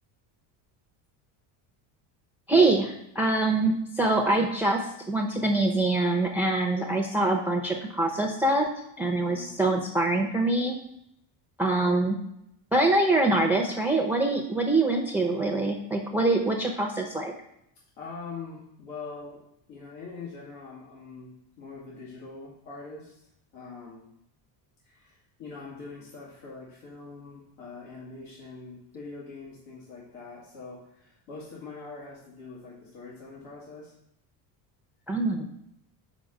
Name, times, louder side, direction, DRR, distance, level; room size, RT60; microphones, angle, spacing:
voice 1, 2.5-8.7 9.0-10.8 11.6-12.2 12.7-17.3 35.1-35.5, right 2 dB, 5° right, 2 dB, 0.6 m, -24 dB
voice 2, 9.0-9.6 18.0-19.4 19.7-23.2 23.5-24.0 24.8-33.9, left 4 dB, 90° left, -6 dB, 2.3 m, -43 dB
5.4 x 5.1 x 6.4 m, 0.77 s
cardioid pair, 135°, 47 cm